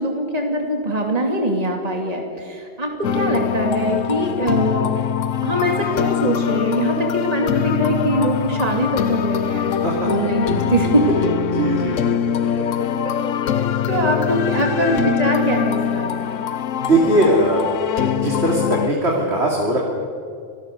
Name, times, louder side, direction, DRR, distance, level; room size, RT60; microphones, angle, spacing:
voice 1, 0.0-5.0 5.4-9.7 10.0-11.3 12.6-16.4, right 1 dB, 30° right, 2 dB, 2.8 m, -22 dB
sound 1, 3.0-18.9, left 9 dB, 80° left, 1.2 m, -23 dB
voice 2, 11.5-12.5 16.8-17.6 18.0-19.8, right 1 dB, 60° right, -2 dB, 3.4 m, -20 dB
29.0 x 18.5 x 6.8 m, 2.4 s
omnidirectional pair, 1.3 m